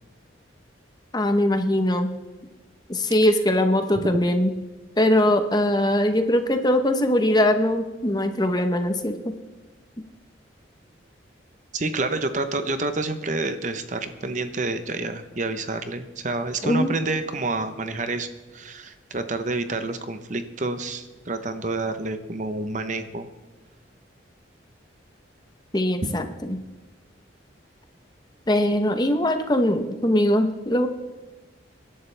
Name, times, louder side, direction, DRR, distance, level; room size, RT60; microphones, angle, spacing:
voice 1, 1.1-2.1 2.9-4.6 5.0-9.4 16.6-16.9 25.7-26.6 28.5-30.9, left 1 dB, 20° left, 7 dB, 0.9 m, -21 dB
voice 2, 11.7-23.3 26.0-26.1, right 2 dB, 40° right, 9 dB, 0.9 m, -28 dB
24.5 x 11.5 x 3.4 m, 1.2 s
head